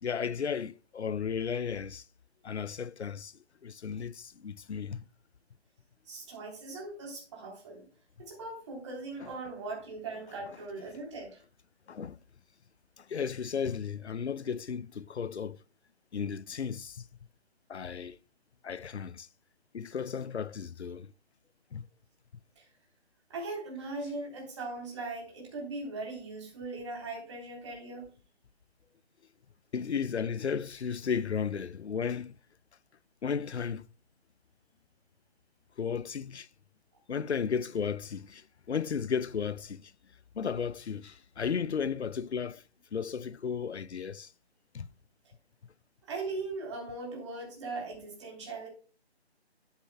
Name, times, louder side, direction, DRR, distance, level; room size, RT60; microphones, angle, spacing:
voice 1, 0.0-2.0 2.4-5.1 9.2-9.3 11.9-12.2 13.0-15.6 16.1-17.1 17.7-18.2 18.6-19.3 19.7-21.1 21.7-21.9 29.7-32.3 33.2-33.9 35.8-36.5 37.1-39.9 40.3-42.6 42.9-44.3 44.7-44.9, left 6 dB, 80° left, 0.6 m, -34 dB
voice 2, 6.1-7.9 8.2-11.4 22.6-22.7 23.3-28.1 46.1-48.7, right 3 dB, 25° right, 3.4 m, -39 dB
10.5 x 9.0 x 2.2 m
figure-of-eight pair, 160°, 33 cm